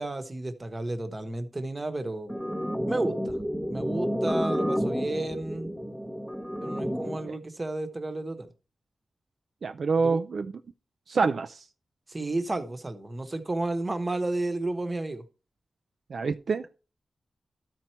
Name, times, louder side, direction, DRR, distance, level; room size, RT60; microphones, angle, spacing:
voice 1, 0.0-2.3 2.9-3.4 3.7-5.7 6.6-8.5 10.0-10.2 12.1-15.2, right 2 dB, 25° right, 1.1 m, -32 dB
sound 1, 2.3-7.3, equal, ahead, 0.8 m, -30 dB
voice 2, 9.6-10.5 11.1-11.6 16.1-16.8, right 4 dB, 65° right, 0.4 m, -26 dB
13.0 x 4.5 x 4.4 m
wide cardioid pair, 155°, 0 cm